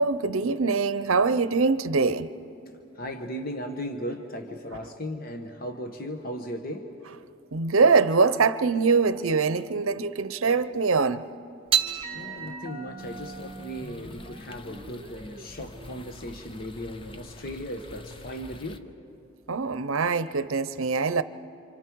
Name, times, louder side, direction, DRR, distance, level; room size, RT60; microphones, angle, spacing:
voice 1, 0.0-2.3 7.5-11.3 19.5-21.2, right 4 dB, 80° right, 13 dB, 0.7 m, -23 dB
voice 2, 2.9-6.9 12.1-18.9, equal, 45° left, 5 dB, 1.2 m, -37 dB
sound 1, 11.7-18.3, right 8 dB, 25° right, 1.2 m, -34 dB
sound 2, 13.0-18.8, left 1 dB, 25° left, 0.6 m, -47 dB
28.5 x 26.5 x 4.6 m, 2.9 s
head